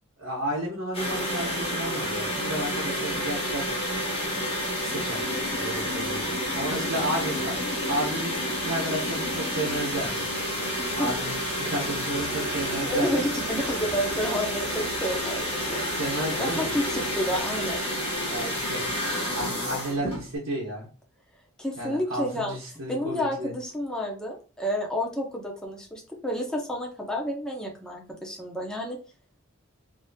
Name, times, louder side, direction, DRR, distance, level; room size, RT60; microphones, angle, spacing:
voice 1, 0.2-3.9 4.8-7.5 7.9-10.1 10.9-13.3 15.9-16.7 18.2-18.9 19.3-20.9 21.8-23.5, right 1 dB, 70° right, -5 dB, 0.9 m, -32 dB
sound 1, 0.9-20.3, equal, 30° left, 1.2 m, -30 dB
sound 2, 4.9-9.9, left 4 dB, 50° left, 0.4 m, -39 dB
voice 2, 10.8-11.1 12.5-15.8 16.4-17.9 21.6-22.6 22.9-29.0, equal, 5° left, -1 dB, 0.7 m, -30 dB
sound 3, 12.1-17.7, right 3 dB, 30° right, 0.8 m, -44 dB
3.9 x 2.7 x 2.2 m, 0.37 s
head